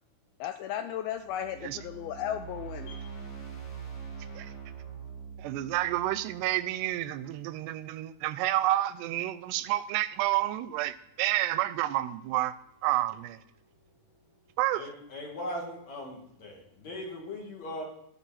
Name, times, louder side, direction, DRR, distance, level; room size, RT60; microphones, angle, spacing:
voice 1, 0.4-3.0, left 10 dB, 80° left, 8 dB, 2.2 m, -35 dB
sound 1, 1.2-7.4, right 7 dB, 20° left, 2.0 m, -44 dB
voice 2, 5.4-12.5 12.8-13.4 14.6-14.8, right 15 dB, 85° right, 15 dB, 2.7 m, -29 dB
voice 3, 14.7-17.8, left 1 dB, 45° left, -1 dB, 3.2 m, -39 dB
19.5 x 6.8 x 4.2 m, 0.77 s
omnidirectional pair, 4.7 m